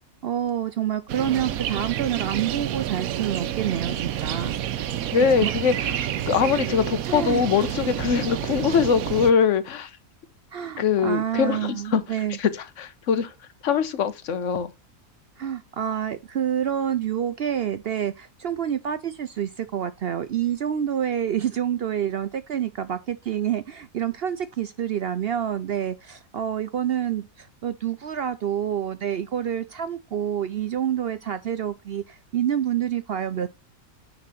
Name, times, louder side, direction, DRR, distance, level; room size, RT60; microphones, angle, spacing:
voice 1, 0.2-4.6 5.4-5.5 7.1-7.4 10.5-12.4 15.4-33.5, right 9 dB, 60° right, 0.6 m, -27 dB
sound 1, 1.1-9.3, right 11 dB, 80° right, 1.1 m, -29 dB
voice 2, 5.1-9.9 10.8-12.0 12.4-13.3 13.6-14.7, left 6 dB, 65° left, 1.2 m, -22 dB
9.6 x 3.8 x 5.6 m
omnidirectional pair, 1.5 m